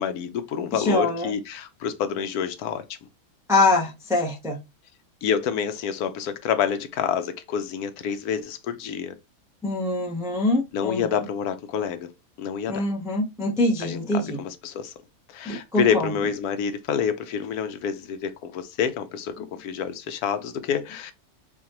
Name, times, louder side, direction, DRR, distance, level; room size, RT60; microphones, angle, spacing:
voice 1, 0.0-2.8 5.2-9.1 10.7-12.1 12.4-12.9 13.8-14.9 15.3-21.1, left 8 dB, 85° left, 1.2 m, -28 dB
voice 2, 0.7-1.3 3.5-4.6 9.6-11.2 12.7-14.4 15.5-16.1, left 2 dB, 5° right, 0.4 m, -24 dB
4.8 x 2.3 x 2.9 m
omnidirectional pair, 1.6 m